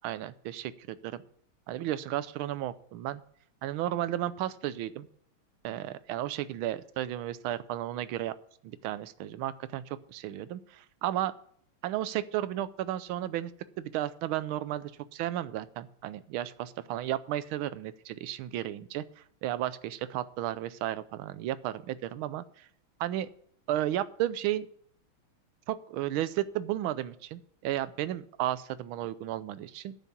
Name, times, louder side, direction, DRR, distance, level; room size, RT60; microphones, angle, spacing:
voice 1, 0.0-1.2 1.7-3.2 3.6-5.1 5.6-8.3 8.6-11.3 11.8-13.5 13.8-19.0 19.4-22.7 23.0-23.3 23.7-24.7 25.7-30.0, right 13 dB, 75° right, 14 dB, 1.5 m, -33 dB
10.5 x 5.9 x 8.4 m, 0.62 s
omnidirectional pair, 2.4 m